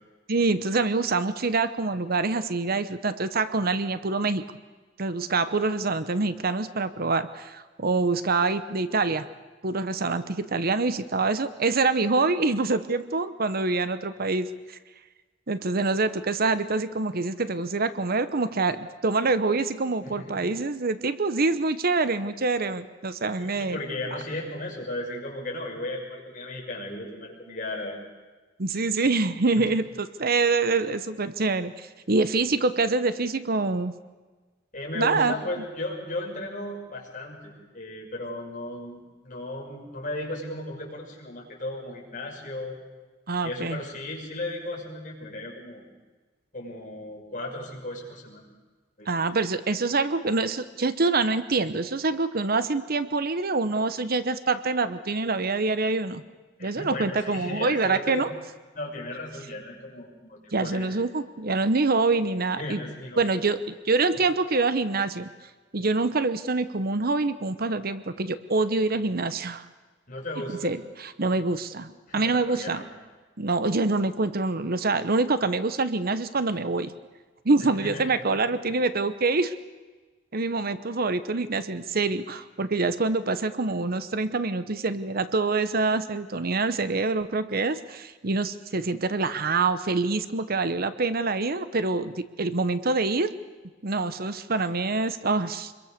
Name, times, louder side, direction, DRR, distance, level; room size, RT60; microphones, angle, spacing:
voice 1, 0.3-4.4 5.0-9.2 9.6-14.8 15.5-23.8 28.6-33.9 34.9-35.3 43.3-43.8 49.1-56.2 56.6-58.3 60.5-62.8 63.2-63.6 63.8-65.3 65.7-69.7 70.5-72.8 73.4-76.9 77.4-79.5 80.3-93.3 93.8-95.7, right 3 dB, 50° right, 12 dB, 1.0 m, -25 dB
voice 2, 20.0-20.4 23.4-28.0 29.6-29.7 34.7-42.8 43.4-45.8 46.5-48.4 49.0-49.1 56.6-58.3 58.7-60.9 62.6-63.3 70.1-70.7 72.1-72.9 77.6-78.4, left 1 dB, 45° left, -1 dB, 6.5 m, -35 dB
26.0 x 22.5 x 6.7 m, 1.3 s
head